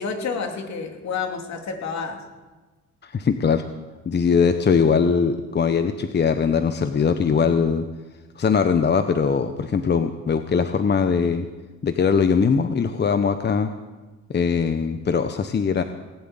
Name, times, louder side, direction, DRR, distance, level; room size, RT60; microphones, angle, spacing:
voice 1, 0.0-2.2, left 5 dB, 65° left, 3 dB, 2.9 m, -29 dB
voice 2, 3.0-3.6 4.0-7.9 8.4-11.5 11.8-13.7 14.3-15.8, left 6 dB, 35° left, 9 dB, 0.9 m, -21 dB
19.0 x 7.8 x 9.0 m, 1.2 s
cardioid pair, 90°, 30 cm